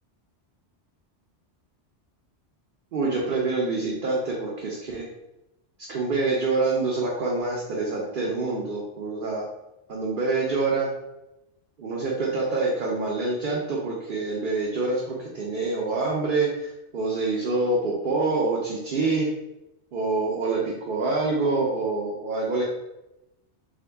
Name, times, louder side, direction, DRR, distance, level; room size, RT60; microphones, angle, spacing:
voice 1, 2.9-5.1 5.9-9.4 9.9-10.9 11.8-19.3 19.9-22.6, right 3 dB, 55° right, -3 dB, 0.7 m, -26 dB
3.7 x 2.2 x 3.3 m, 0.92 s
omnidirectional pair, 1.2 m